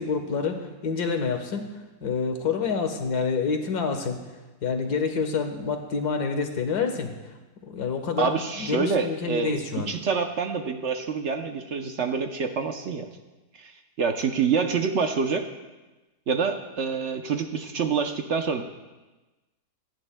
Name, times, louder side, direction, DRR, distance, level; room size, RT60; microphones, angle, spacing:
voice 1, 0.0-1.7 2.0-4.2 4.6-7.1 7.6-9.9, left 5 dB, 85° left, 5 dB, 1.8 m, -27 dB
voice 2, 8.2-13.1 13.5-15.4 16.3-18.6, right 5 dB, 55° right, 5 dB, 0.9 m, -27 dB
25.5 x 10.5 x 2.2 m, 1.1 s
omnidirectional pair, 1.6 m